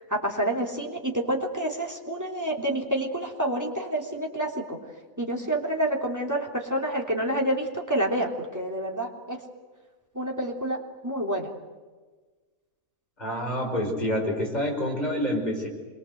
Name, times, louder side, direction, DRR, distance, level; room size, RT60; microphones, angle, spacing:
voice 1, 0.0-4.8 5.2-9.4 10.1-11.5, right 1 dB, 10° right, 1 dB, 3.3 m, -28 dB
voice 2, 13.2-15.7, equal, 30° left, 0 dB, 5.2 m, -27 dB
26.5 x 23.5 x 8.0 m, 1.3 s
omnidirectional pair, 1.5 m